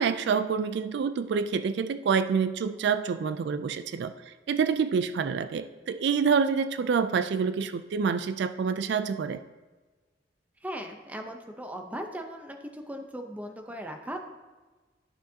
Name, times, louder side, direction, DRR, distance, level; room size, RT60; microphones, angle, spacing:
voice 1, 0.0-9.4, right 6 dB, 65° right, 11 dB, 0.3 m, -27 dB
voice 2, 10.6-14.2, equal, 10° right, 4 dB, 0.7 m, -38 dB
12.0 x 6.3 x 2.8 m, 1.3 s
head